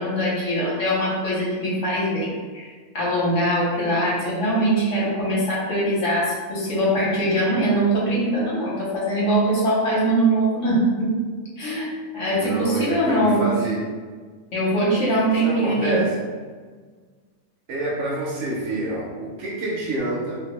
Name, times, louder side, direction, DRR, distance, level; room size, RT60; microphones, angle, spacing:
voice 1, 0.0-2.7 2.9-11.2 11.6-11.9 12.1-13.5 14.5-16.0, right 1 dB, 60° left, -6 dB, 1.1 m, -22 dB
voice 2, 12.3-13.8 15.4-16.1 17.7-20.4, right 2 dB, 65° right, -4 dB, 0.8 m, -27 dB
2.7 x 2.3 x 2.9 m, 1.5 s
omnidirectional pair, 1.5 m